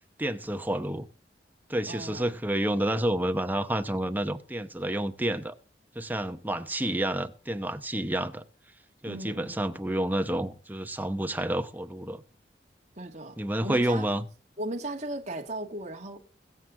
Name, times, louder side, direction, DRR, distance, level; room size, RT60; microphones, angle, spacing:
voice 1, 0.2-1.1 1.7-5.6 5.9-8.4 9.0-12.2 13.4-14.3, right 1 dB, 10° right, 0.8 m, -29 dB
voice 2, 1.9-2.3 9.1-9.6 13.0-14.1 14.6-16.2, right 1 dB, 40° right, 2.1 m, -37 dB
21.5 x 7.9 x 3.8 m
head